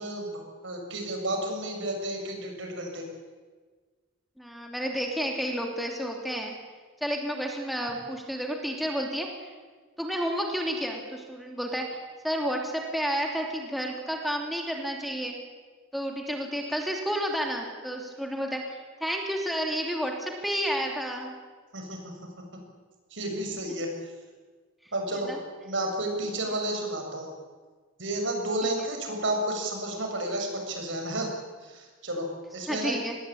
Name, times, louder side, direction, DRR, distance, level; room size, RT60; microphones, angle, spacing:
voice 1, 0.0-3.1 21.7-22.6 23.1-23.9 24.9-25.3 25.6-27.3 28.0-31.3 31.6-32.3 32.5-33.0, right 1 dB, 65° right, 3 dB, 7.0 m, -31 dB
voice 2, 4.4-6.5 7.0-9.5 10.0-12.0 12.2-15.3 15.9-21.4 25.3-25.4 28.6-28.7 32.7-33.2, equal, ahead, 0 dB, 3.0 m, -31 dB
25.5 x 20.5 x 8.8 m, 1.4 s
head